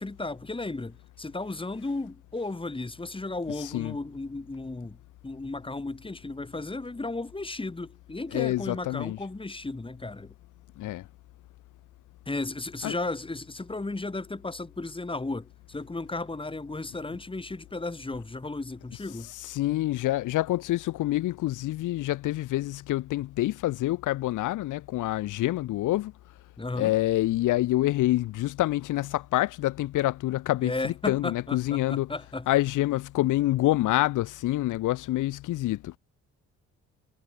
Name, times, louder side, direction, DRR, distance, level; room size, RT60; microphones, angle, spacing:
voice 1, 0.0-5.0 5.2-10.3 12.2-19.3 26.6-26.9 30.6-32.5, left 2 dB, 15° left, 5.2 m, -34 dB
voice 2, 3.6-3.9 8.3-9.2 10.8-11.1 12.8-12.9 19.3-26.1 26.7-32.1 32.5-35.9, left 16 dB, 85° left, 1.2 m, -27 dB
cardioid pair, 90°, 30 cm